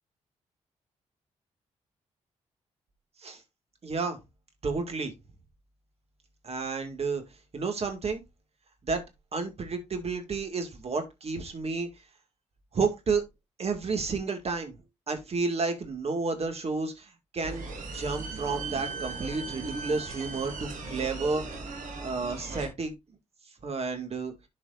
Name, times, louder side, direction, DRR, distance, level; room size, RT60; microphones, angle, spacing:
voice 1, 3.8-4.2 4.6-5.1 6.4-7.2 7.5-8.2 8.8-9.0 9.3-11.9 12.7-13.3 13.6-14.8 15.1-17.7 17.9-21.4 22.0-23.0 23.6-24.3, right 4 dB, 50° right, 2.1 m, -31 dB
sound 1, 17.4-22.7, right 3 dB, 80° right, 2.6 m, -38 dB
11.5 x 4.8 x 2.5 m
supercardioid pair, 60°, 13 cm